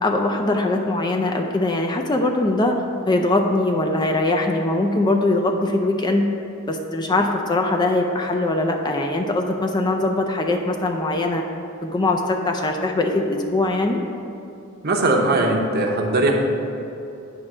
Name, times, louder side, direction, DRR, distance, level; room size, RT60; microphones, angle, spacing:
voice 1, 0.0-2.8 3.1-6.3 6.7-11.4 11.8-14.0, left 2 dB, 20° left, 3 dB, 0.4 m, -21 dB
voice 2, 14.8-16.3, right 2 dB, 45° right, 1 dB, 0.8 m, -19 dB
8.9 x 3.2 x 6.0 m, 2.8 s
head